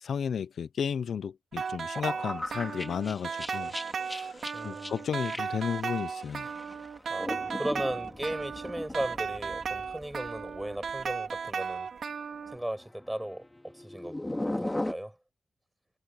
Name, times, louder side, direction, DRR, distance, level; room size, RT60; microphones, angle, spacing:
voice 1, 0.0-3.7 4.1-4.4 4.6-6.5, left 7 dB, 80° left, 0.5 m, -33 dB
sound 1, 1.5-12.6, right 6 dB, 65° right, 3.2 m, -36 dB
sound 2, 2.0-11.1 11.4-11.6 12.5-14.9, left 1 dB, 10° left, 2.5 m, -39 dB
voice 2, 4.5-5.0 7.1-11.9 12.5-14.2 14.4-15.2, right 1 dB, 5° right, 7.9 m, -36 dB
wide cardioid pair, 130°, 0 cm